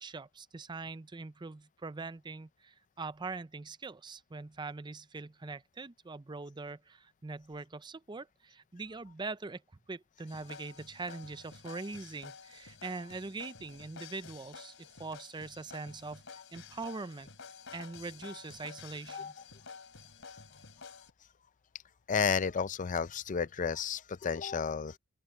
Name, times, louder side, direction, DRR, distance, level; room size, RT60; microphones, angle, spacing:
voice 1, 0.0-9.6 9.9-17.3 17.7-19.3, right 3 dB, 20° right, 0.5 m, -42 dB
sound 1, 10.3-21.1, left 5 dB, 65° left, 3.2 m, -51 dB
voice 2, 22.1-25.0, left 6 dB, 35° left, 0.4 m, -32 dB
open air
head